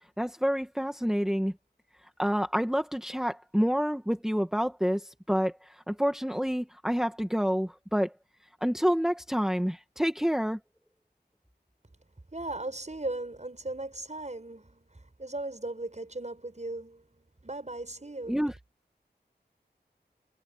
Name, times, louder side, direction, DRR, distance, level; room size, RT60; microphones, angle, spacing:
voice 1, 0.2-1.5 2.2-8.1 8.6-10.6 18.3-18.5, equal, 5° right, 1.7 m, -28 dB
voice 2, 12.3-18.3, right 2 dB, 40° right, 6.6 m, -38 dB
wide cardioid pair, 55°, 18 cm